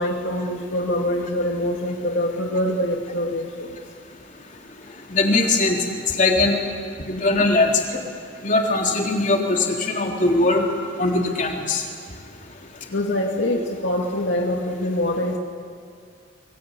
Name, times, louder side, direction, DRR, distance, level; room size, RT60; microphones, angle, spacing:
voice 1, 0.0-3.7 12.9-15.4, left 1 dB, 75° left, 1 dB, 2.1 m, -24 dB
voice 2, 5.1-5.8 6.1-6.6 7.1-8.0 8.4-10.7 11.0-11.8, left 2 dB, 45° left, 1 dB, 3.7 m, -20 dB
29.0 x 22.0 x 8.3 m, 2.2 s
head